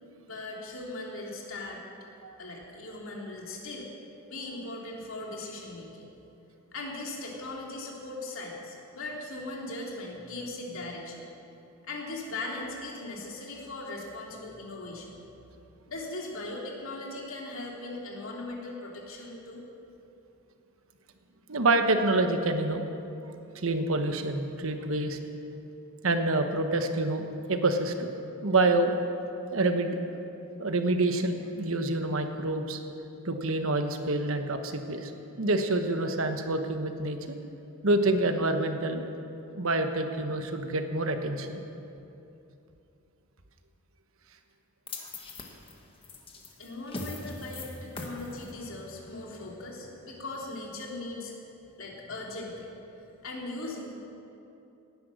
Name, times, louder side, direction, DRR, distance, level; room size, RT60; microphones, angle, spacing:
voice 1, 0.3-1.8 2.4-3.9 4.3-6.1 6.7-11.3 11.8-15.2 15.9-19.6 46.6-51.3 51.8-52.7 53.2-54.1, left 2 dB, 65° left, -2 dB, 2.9 m, -39 dB
voice 2, 21.5-22.9 23.5-25.2 26.0-28.1 28.4-28.9 29.5-30.1 30.6-32.8 33.2-35.1 35.4-37.3 37.8-39.0 39.5-41.6, right 2 dB, 65° right, 6 dB, 1.2 m, -27 dB
sound 1, 44.9-51.1, left 2 dB, 25° left, 1.5 m, -43 dB
18.0 x 10.5 x 6.3 m, 2.8 s
head